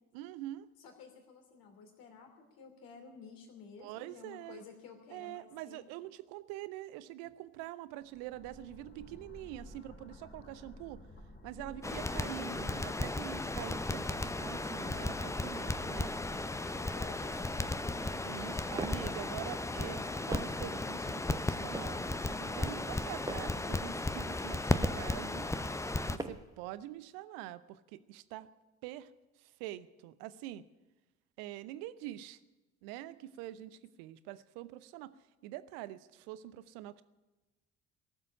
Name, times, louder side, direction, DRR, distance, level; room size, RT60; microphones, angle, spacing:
voice 1, 0.1-0.7 3.8-4.6 5.1-11.0 11.4-16.1 18.2-20.0 20.3-25.5 26.1-28.5 28.8-29.1 29.4-30.6 31.4-32.4 32.8-35.1 35.4-37.0, right 14 dB, 60° right, 16 dB, 0.8 m, -45 dB
voice 2, 0.8-5.9 11.6-12.1 14.9-15.6 16.7-18.8 19.1-19.5 19.8-20.3, left 5 dB, 60° left, 3 dB, 3.0 m, -53 dB
sound 1, 8.0-18.2, left 1 dB, 30° left, 2.8 m, -53 dB
Crackle, 11.8-26.2, left 2 dB, 5° left, 0.7 m, -35 dB
sound 2, 18.7-19.1 19.8-20.7 21.4-22.0 22.7-23.6 24.3-25.1 25.8-26.6, right 2 dB, 10° right, 1.1 m, -43 dB
18.5 x 7.5 x 9.9 m, 1.1 s
figure-of-eight pair, 50°, 39 cm